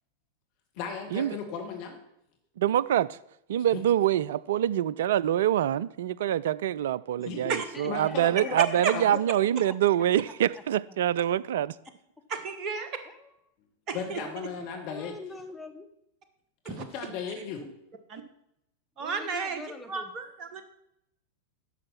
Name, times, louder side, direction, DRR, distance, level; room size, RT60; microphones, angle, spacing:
voice 1, 0.8-2.0 3.7-3.8 7.3-7.4 7.8-8.6 8.9-9.2 13.9-15.1 16.6-17.6, left 6 dB, 45° left, 1.6 m, -36 dB
voice 2, 2.6-3.2 3.5-11.7, right 11 dB, 60° right, 0.3 m, -25 dB
voice 3, 7.2-8.8 12.7-13.3 14.9-15.9 17.5-17.7 19.0-20.1, left 3 dB, 5° left, 1.1 m, -45 dB
voice 4, 12.3-12.9 13.9-14.2 16.6-16.9 18.1-18.2 19.0-19.6 19.9-20.6, right 5 dB, 35° right, 1.3 m, -32 dB
9.8 x 6.3 x 5.9 m
figure-of-eight pair, 90°, 0 cm